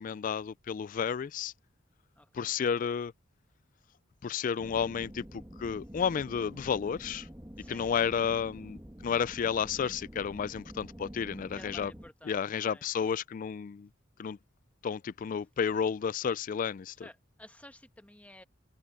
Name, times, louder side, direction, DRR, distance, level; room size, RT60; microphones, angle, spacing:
voice 1, 0.0-1.5 2.3-3.1 4.2-7.3 7.7-11.9 12.2-13.9 14.2-14.4 14.8-17.1, left 7 dB, 40° left, 0.3 m, -32 dB
voice 2, 2.2-2.6 7.6-7.9 11.5-12.9 15.7-15.8 17.0-18.4, left 1 dB, 5° left, 1.2 m, -53 dB
sound 1, 4.6-12.1, equal, 15° right, 1.9 m, -47 dB
head